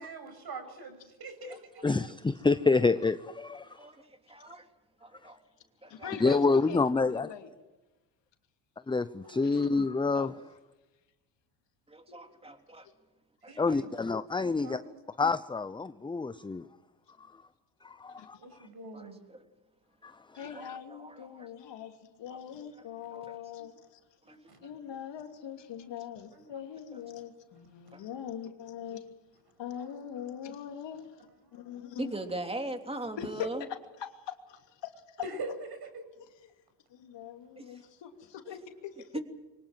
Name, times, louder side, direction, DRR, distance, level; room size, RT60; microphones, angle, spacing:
voice 1, 0.0-1.9 9.2-9.5 13.5-13.9 14.6-15.0 18.4-19.2 22.8-23.0 24.5-24.7 26.3-26.6 29.7-29.9 35.2-35.9, right 3 dB, 50° right, 8 dB, 6.8 m, -44 dB
voice 2, 1.8-3.9 6.2-7.3 8.9-10.3 13.6-14.8 15.2-16.7 17.2-17.3 17.8-18.4 20.0-20.5, left 4 dB, 10° left, 14 dB, 0.7 m, -28 dB
voice 3, 3.7-4.6 5.0-5.4 5.8-6.3 11.9-12.9 13.4-13.8 18.9-19.4 20.5-21.5 22.3-22.4 23.1-23.4 24.3-24.4 26.9-27.0 27.9-28.0 32.0-33.6 37.6-37.8 39.1-39.2, right 2 dB, 10° right, 5 dB, 3.1 m, -40 dB
voice 4, 5.9-7.5 9.5-9.6 10.1-10.3 12.1-12.2 18.2-18.3 20.3-24.0 24.6-29.0 29.6-31.1 31.5-32.1 33.2-34.9 36.9-39.1, left 9 dB, 55° left, 5 dB, 2.9 m, -42 dB
24.0 x 18.5 x 7.6 m, 1.1 s
supercardioid pair, 75°, 50 cm